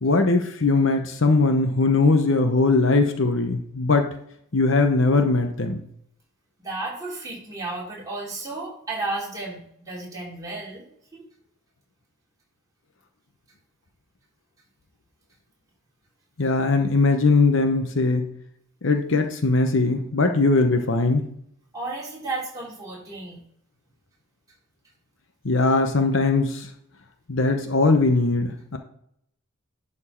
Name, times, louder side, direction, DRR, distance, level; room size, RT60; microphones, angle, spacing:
voice 1, 0.0-4.1 4.5-5.8 16.4-18.3 18.8-21.2 25.4-26.7 27.3-28.8, left 3 dB, 60° left, 6 dB, 0.9 m, -20 dB
voice 2, 6.6-10.9 11.1-11.2 21.7-23.4, right 2 dB, 15° right, -5 dB, 3.5 m, -33 dB
11.0 x 4.4 x 4.4 m, 0.70 s
head